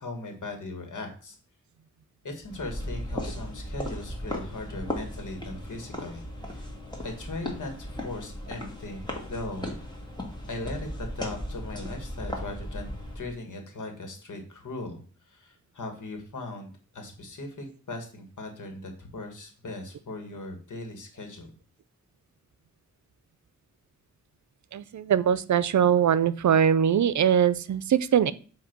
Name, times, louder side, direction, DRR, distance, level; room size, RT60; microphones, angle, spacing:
voice 1, 0.0-1.4 2.2-6.7 7.0-9.8 10.4-21.5, left 2 dB, 80° left, 4 dB, 1.7 m, -39 dB
sound 1, 2.4-13.3, left 1 dB, 15° left, 1.9 m, -36 dB
voice 2, 24.7-28.3, right 8 dB, 70° right, 15 dB, 0.5 m, -22 dB
7.9 x 2.9 x 6.0 m, 0.40 s
wide cardioid pair, 70°, 30 cm